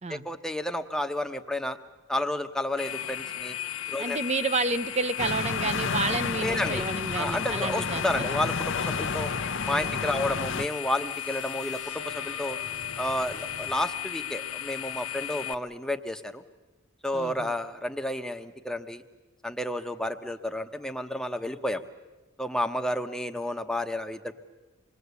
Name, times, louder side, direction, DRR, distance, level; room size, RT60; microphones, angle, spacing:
voice 1, 0.1-1.8 2.1-3.6 3.9-4.2 6.4-6.8 7.1-9.3 9.6-12.6 13.0-16.4 17.0-19.0 19.4-21.8 22.4-24.4, left 1 dB, 5° left, 6 dB, 0.9 m, -31 dB
sound 1, 2.8-15.5, left 12 dB, 90° left, 0.9 m, -35 dB
voice 2, 4.0-8.3 9.7-10.3 17.1-17.5, right 3 dB, 30° right, 14 dB, 0.7 m, -31 dB
sound 2, 5.2-10.7, left 4 dB, 60° left, 0.7 m, -31 dB
sound 3, 8.7-13.7, left 1 dB, 85° right, 7.8 m, -46 dB
27.0 x 21.0 x 8.3 m, 1.2 s
head